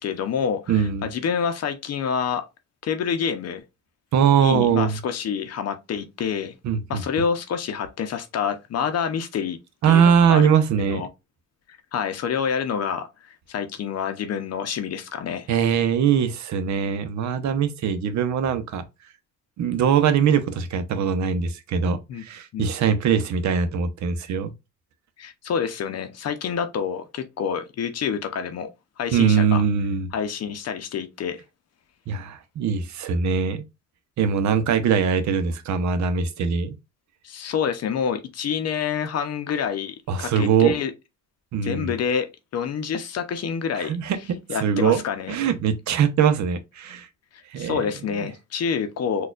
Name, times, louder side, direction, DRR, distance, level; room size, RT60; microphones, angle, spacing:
voice 1, 0.0-2.4 2.8-3.6 4.4-6.5 6.9-9.6 9.9-10.6 10.9-11.1 11.9-15.5 22.1-22.2 22.5-22.7 25.2-28.7 29.0-29.6 30.1-31.4 34.2-34.3 37.2-40.9 41.6-43.9 44.5-45.3 47.3-49.3, left 7 dB, 55° left, 0.6 m, -27 dB
voice 2, 0.7-1.1 4.1-5.0 6.6-7.0 9.8-11.0 15.5-18.8 19.6-24.5 29.1-30.1 32.1-33.6 34.2-36.8 40.1-40.7 41.5-42.0 43.8-45.0 45.3-47.1 47.5-47.8, right 7 dB, 65° right, 0.7 m, -21 dB
4.1 x 2.3 x 2.3 m
cardioid pair, 90°, 30 cm